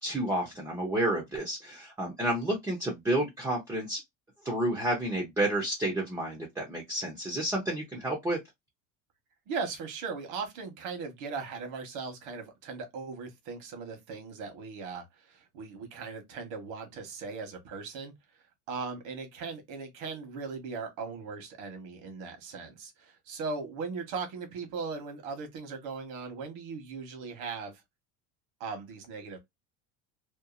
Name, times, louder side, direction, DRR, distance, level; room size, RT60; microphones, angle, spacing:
voice 1, 0.0-4.0 4.4-8.4, right 1 dB, 10° right, 0.5 m, -30 dB
voice 2, 9.5-18.1 18.7-27.8 28.6-29.4, right 4 dB, 75° right, 1.3 m, -38 dB
2.8 x 2.3 x 2.4 m
cardioid pair, 160°, 35 cm